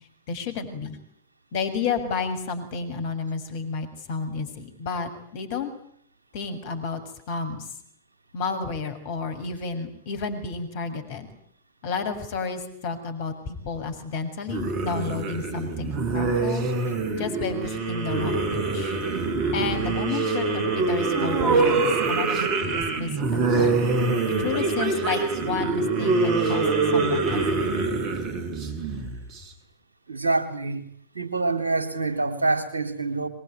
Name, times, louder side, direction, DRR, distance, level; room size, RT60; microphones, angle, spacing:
voice 1, 0.3-1.0 1.5-5.7 6.3-7.7 8.3-11.3 11.8-16.7 17.2-19.0 19.5-23.9 24.3-26.6 26.9-27.8, left 5 dB, 50° left, 9 dB, 7.0 m, -31 dB
sound 1, 14.5-29.4, right 3 dB, 35° right, 6.9 m, -25 dB
voice 2, 30.1-30.8 31.1-33.3, right 3 dB, 75° right, 9 dB, 3.8 m, -26 dB
26.0 x 23.0 x 9.6 m, 0.65 s
figure-of-eight pair, 90°, 0 cm